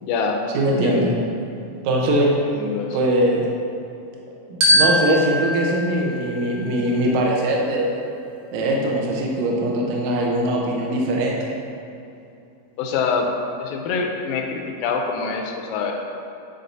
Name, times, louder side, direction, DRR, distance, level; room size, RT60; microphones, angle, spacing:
voice 1, 0.0-0.4 0.8-1.1 2.5-3.1 12.8-13.3 13.6-15.9, left 5 dB, 80° left, 2 dB, 2.1 m, -25 dB
voice 2, 0.5-1.1 1.8-2.3 2.9-3.4 4.5-8.0 8.5-11.5, right 1 dB, 85° right, -2 dB, 1.6 m, -21 dB
Glockenspiel, 4.6-7.1, equal, 65° right, 1.7 m, -22 dB
9.7 x 4.3 x 2.7 m, 2.6 s
omnidirectional pair, 4.3 m